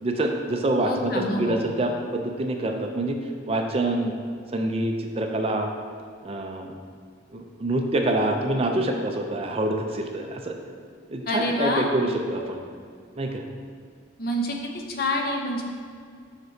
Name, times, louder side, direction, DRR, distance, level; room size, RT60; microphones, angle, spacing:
voice 1, 0.0-3.2 3.5-4.1 4.5-5.7 6.2-6.7 7.3-10.5 11.1-12.6 13.2-13.4, right 1 dB, 30° right, 3 dB, 0.4 m, -26 dB
voice 2, 0.8-1.6 11.3-11.9 14.2-15.6, left 1 dB, 50° left, 1 dB, 0.7 m, -27 dB
7.5 x 5.9 x 2.7 m, 2.1 s
head